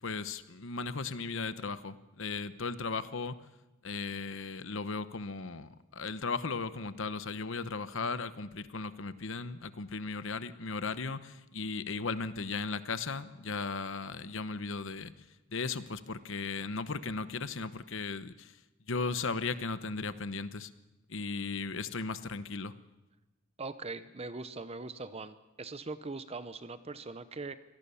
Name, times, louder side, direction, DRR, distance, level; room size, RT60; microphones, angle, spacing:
voice 1, 0.0-3.4 3.8-15.1 15.5-18.6 18.9-20.7 21.1-22.7, left 4 dB, 65° left, 13 dB, 1.0 m, -36 dB
voice 2, 23.6-27.5, right 3 dB, 30° right, 12 dB, 0.7 m, -41 dB
24.5 x 18.0 x 7.1 m, 1.0 s
head